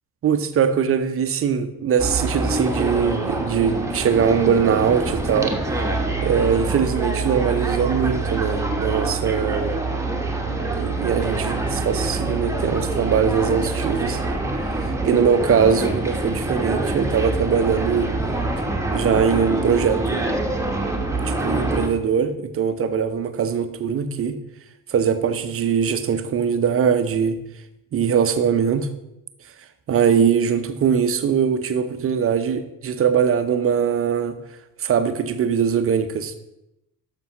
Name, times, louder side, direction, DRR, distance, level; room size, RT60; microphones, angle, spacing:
voice 1, 0.2-5.6 6.2-9.8 10.5-14.2 14.6-18.1 18.9-20.3 21.2-24.4 24.9-27.4 27.9-28.9 29.9-34.4 34.8-36.4, right 7 dB, 30° right, 10 dB, 0.7 m, -21 dB
sound 1, 2.0-21.9, right 2 dB, 5° right, 1.1 m, -25 dB
12.5 x 5.2 x 3.0 m, 0.88 s
figure-of-eight pair, 50°, 47 cm